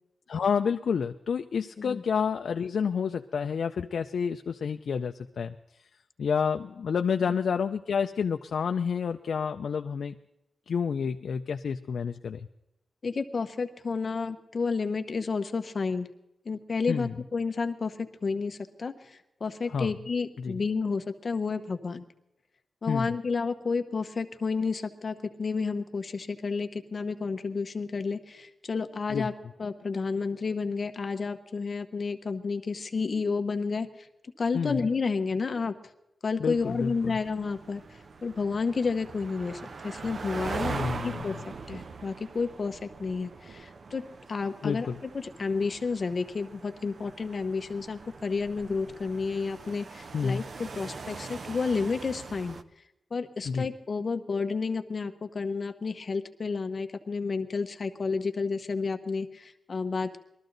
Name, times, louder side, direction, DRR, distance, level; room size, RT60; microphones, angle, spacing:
voice 1, 0.3-5.5 6.2-10.1 10.7-12.5 16.9-17.1 19.7-19.9 20.4-20.6 22.9-23.1 29.1-29.3 34.5-34.8 36.4-37.2 40.7-41.4 44.6-45.0 50.1-50.4 53.5-53.7, left 6 dB, 75° left, 6 dB, 0.5 m, -29 dB
voice 2, 13.0-16.1 16.4-22.1 22.8-29.3 29.6-34.1 34.4-35.8 36.2-40.8 41.0-41.4 41.7-52.6 53.1-60.2, left 4 dB, 40° left, 7 dB, 1.0 m, -31 dB
sound 1, 36.5-52.6, right 4 dB, 50° right, 0.6 m, -41 dB
21.0 x 13.5 x 4.0 m, 0.87 s
wide cardioid pair, 165°, 0 cm